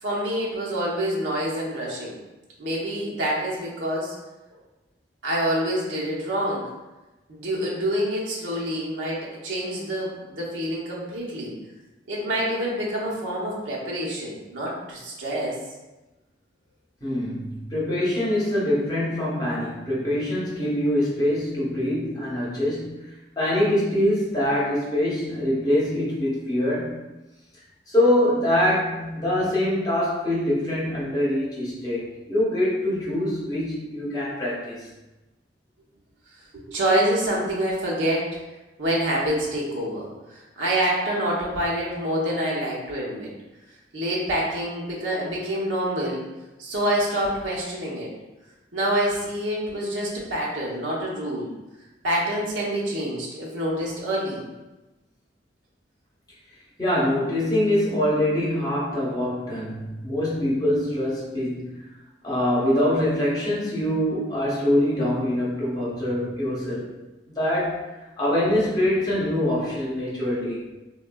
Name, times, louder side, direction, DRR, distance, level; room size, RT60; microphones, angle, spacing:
voice 1, 0.0-2.2 2.6-4.1 5.2-6.7 7.3-11.5 12.1-15.6 36.5-38.3 38.8-43.3 43.9-46.2 46.6-48.1 48.7-51.5 52.0-54.4, right 1 dB, 90° right, -5 dB, 0.8 m, -26 dB
voice 2, 17.0-27.0 27.9-34.9 56.8-61.8 62.2-66.9 67.3-67.9 68.2-70.7, left 1 dB, 20° left, -7 dB, 0.8 m, -24 dB
3.6 x 2.3 x 2.2 m, 1.1 s
head